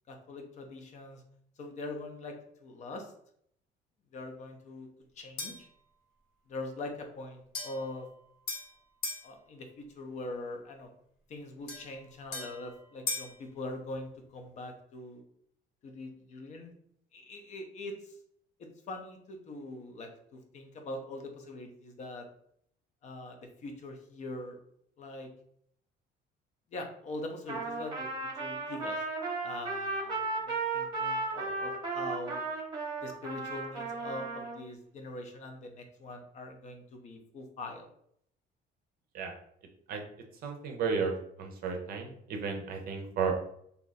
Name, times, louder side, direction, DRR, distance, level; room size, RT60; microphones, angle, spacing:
voice 1, 0.1-1.2 1.6-2.4 2.6-3.1 4.1-4.9 5.2-5.7 6.5-8.1 9.2-10.9 11.3-15.2 15.8-16.7 17.1-18.1 18.9-22.3 23.0-24.6 25.0-25.3 26.7-28.1 28.3-29.0 29.4-30.3 30.7-32.4 33.0-37.9, left 2 dB, 40° left, 4 dB, 0.5 m, -42 dB
sound 1, 5.4-5.7 7.5-9.3 11.7-13.4, left 3 dB, 55° left, 0.9 m, -39 dB
Trumpet, 27.5-34.6, right 3 dB, 25° right, 0.8 m, -35 dB
voice 2, 40.4-41.1 41.4-43.4, right 5 dB, 50° right, 3 dB, 0.6 m, -33 dB
2.7 x 2.4 x 3.9 m, 0.69 s
cardioid pair, 180°, 19 cm